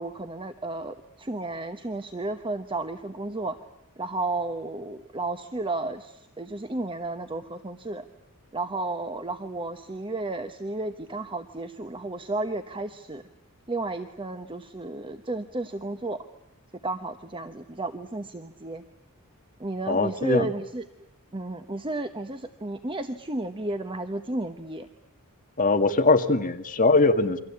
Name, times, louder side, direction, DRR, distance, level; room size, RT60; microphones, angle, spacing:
voice 1, 0.0-3.6 4.0-8.1 8.5-13.2 13.7-16.3 16.8-18.8 19.6-20.8 21.3-24.9, right 2 dB, 25° right, 8 dB, 1.0 m, -32 dB
voice 2, 19.9-20.5 25.6-27.4, left 3 dB, 35° left, 6 dB, 1.9 m, -21 dB
28.5 x 24.5 x 8.6 m, 0.79 s
head